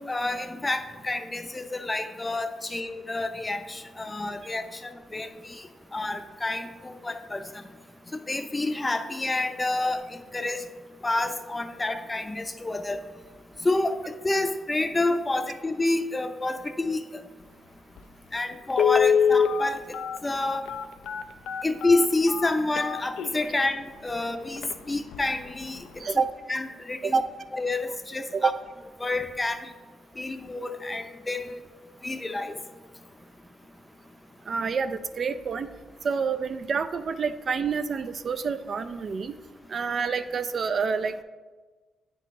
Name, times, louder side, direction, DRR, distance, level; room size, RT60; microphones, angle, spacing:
voice 1, 0.0-5.7 5.9-7.5 8.3-10.6 11.0-13.0 13.6-14.0 14.2-17.0 18.3-20.0 20.2-20.6 21.6-26.0 26.5-27.2 27.5-28.5 29.0-29.6 30.2-31.5 32.0-32.5, left 2 dB, 20° left, 8 dB, 0.5 m, -28 dB
Telephone, 18.0-18.1 18.7-23.6 24.1-24.2 24.6-24.7 25.1-25.4 25.7-25.8, left 7 dB, 85° left, 0.3 m, -25 dB
voice 2, 26.0-26.4 27.0-27.3 28.3-28.6 34.5-35.7 36.0-39.3 39.7-41.2, right 5 dB, 55° right, 11 dB, 0.3 m, -28 dB
9.0 x 3.9 x 3.6 m, 1.3 s
cardioid pair, 75°, 0 cm